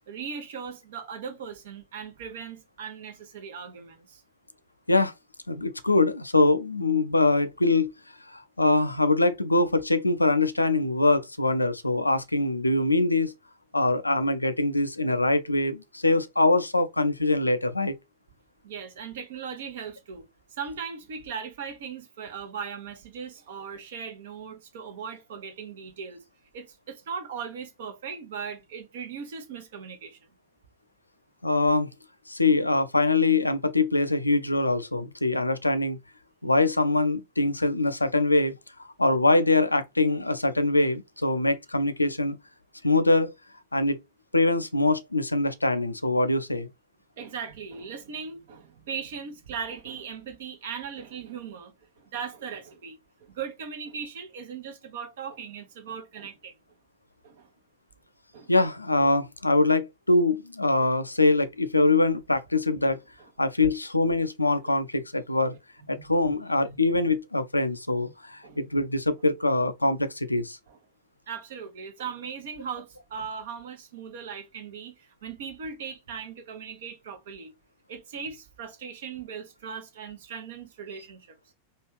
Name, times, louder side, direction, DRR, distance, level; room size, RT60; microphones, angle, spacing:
voice 1, 0.1-4.2 18.6-20.2 20.5-26.2 26.5-30.2 47.2-56.5 57.2-57.5 58.3-58.5 60.8-60.9 64.5-64.6 65.9-66.3 66.7-66.8 68.0-68.1 68.4-68.6 70.7-70.8 71.3-77.5 77.9-81.4, right 6 dB, 55° right, 0.8 m, -38 dB
voice 2, 5.5-7.9 8.3-13.3 13.7-17.9 31.4-31.9 32.3-36.0 36.4-38.5 38.8-42.4 42.8-43.3 43.7-44.0 44.3-46.7 58.5-63.0 63.4-65.6 65.9-70.6, left 2 dB, 85° left, 0.3 m, -23 dB
3.1 x 2.3 x 3.1 m
figure-of-eight pair, 90°, 0 cm